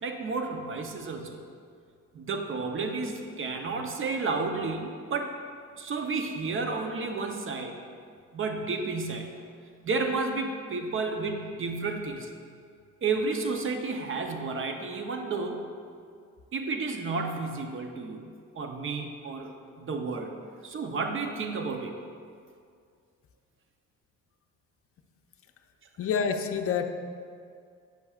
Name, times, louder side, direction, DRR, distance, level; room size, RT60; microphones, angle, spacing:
voice 1, 0.0-1.4 2.1-5.3 5.8-7.8 8.3-9.3 9.8-12.3 13.0-15.6 16.5-18.3 18.5-20.3 20.6-21.9, right 4 dB, 45° right, 5 dB, 0.7 m, -31 dB
voice 2, 26.0-26.9, left 6 dB, 50° left, 6 dB, 0.5 m, -27 dB
8.4 x 5.7 x 2.4 m, 2.2 s
cardioid pair, 90°, 30 cm